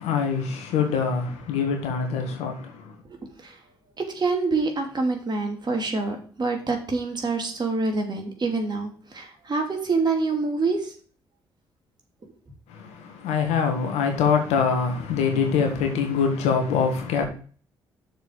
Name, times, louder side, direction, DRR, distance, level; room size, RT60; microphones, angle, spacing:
voice 1, 0.0-2.5 13.2-17.3, left 6 dB, 70° left, 1.8 m, -23 dB
voice 2, 4.0-10.9, right 3 dB, 40° right, 2.6 m, -26 dB
6.6 x 5.1 x 6.5 m
hypercardioid pair, 45°, 11 cm